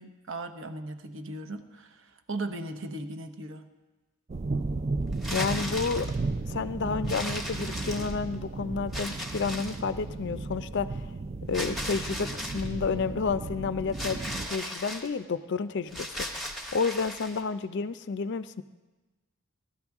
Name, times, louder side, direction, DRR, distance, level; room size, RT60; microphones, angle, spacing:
voice 1, 0.0-3.7, right 2 dB, 60° right, 7 dB, 0.9 m, -38 dB
sound 1, 4.3-14.5, right 3 dB, 30° right, 0.4 m, -34 dB
sound 2, 5.1-6.2 7.1-8.3 8.9-9.9 11.5-12.7 13.9-15.1 15.9-17.4, equal, ahead, 1.1 m, -37 dB
voice 2, 5.3-6.1 6.5-11.1 11.5-16.1 16.7-18.6, left 5 dB, 50° left, 14 dB, 0.4 m, -30 dB
17.0 x 12.5 x 3.5 m, 1.2 s
head